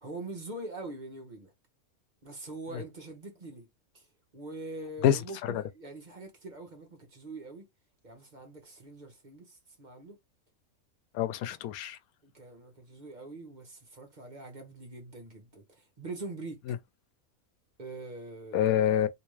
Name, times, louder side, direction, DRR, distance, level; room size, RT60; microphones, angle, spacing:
voice 1, 0.0-1.5 2.2-3.7 3.9-4.1 4.3-7.6 8.0-10.2 12.2-16.6 17.8-18.7, right 2 dB, 35° right, 1.1 m, -43 dB
voice 2, 5.0-5.6 11.1-12.0 16.7-16.8 18.5-19.1, left 10 dB, 90° left, 1.0 m, -27 dB
3.5 x 2.9 x 3.1 m
omnidirectional pair, 1.5 m